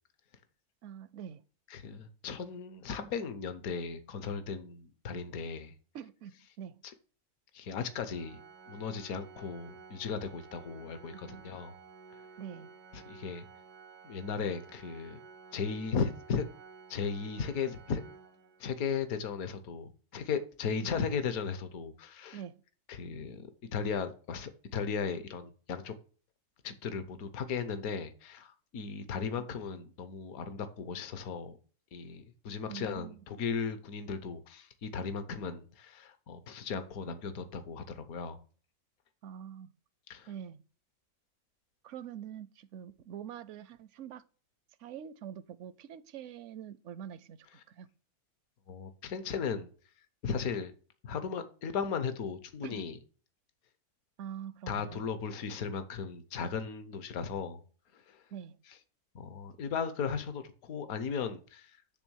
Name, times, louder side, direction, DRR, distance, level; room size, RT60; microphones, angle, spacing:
voice 1, 0.8-1.4 5.9-6.8 11.1-11.4 12.4-12.7 20.8-20.9 22.3-22.6 29.4-29.5 32.7-33.2 39.2-39.7 40.3-40.6 41.8-44.2 44.8-47.9 52.6-52.8 54.2-55.1 58.3-58.6, right 9 dB, 65° right, 0.8 m, -45 dB
voice 2, 1.7-5.7 7.5-8.4 8.7-11.7 12.9-13.4 14.0-15.2 15.5-16.4 16.9-18.0 18.6-22.4 22.9-25.9 26.6-31.6 31.9-38.4 40.1-40.3 48.7-49.7 50.2-50.7 51.0-53.0 54.7-57.6 57.9-58.2 59.1-61.8, left 6 dB, 70° left, 1.4 m, -36 dB
Organ, 8.1-19.0, right 5 dB, 85° right, 1.4 m, -53 dB
10.0 x 3.6 x 6.2 m
omnidirectional pair, 1.6 m